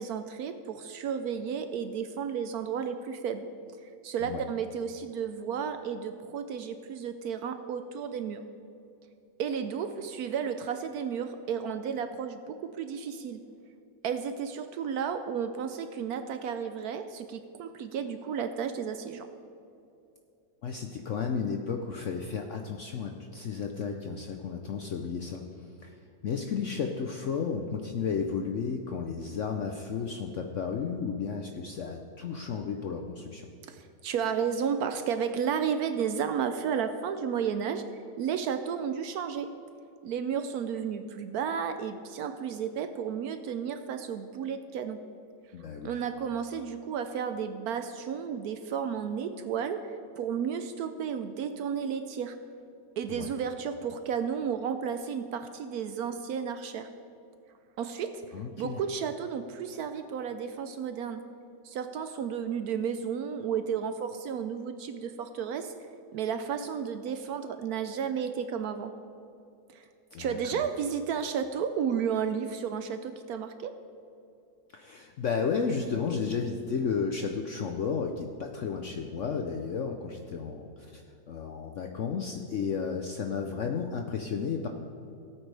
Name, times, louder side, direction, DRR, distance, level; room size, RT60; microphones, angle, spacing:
voice 1, 0.0-3.5 4.0-8.4 9.4-13.4 14.0-19.3 33.7-37.8 38.2-39.5 40.0-45.0 45.8-52.4 53.0-56.9 57.8-61.2 61.6-65.7 66.1-68.9 69.7-69.8 70.2-73.7, right 7 dB, 70° right, 8 dB, 0.9 m, -33 dB
voice 2, 20.6-33.5 45.5-45.9 53.1-53.3 58.3-58.8 70.1-70.6 74.7-84.7, left 6 dB, 65° left, 4 dB, 0.7 m, -33 dB
17.0 x 8.8 x 3.3 m, 2.7 s
omnidirectional pair, 1.9 m